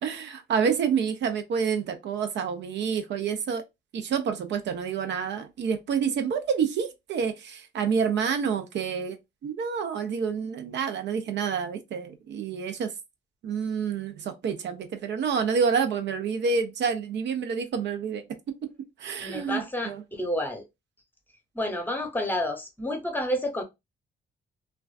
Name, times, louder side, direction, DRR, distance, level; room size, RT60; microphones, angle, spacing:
voice 1, 0.0-3.6 3.9-9.2 9.4-12.9 13.4-18.5 19.0-20.0, right 6 dB, 65° right, 0.5 m, -28 dB
voice 2, 19.2-20.6 21.5-23.6, left 1 dB, 10° left, 0.8 m, -30 dB
2.4 x 2.2 x 2.3 m
cardioid pair, 90°, 20 cm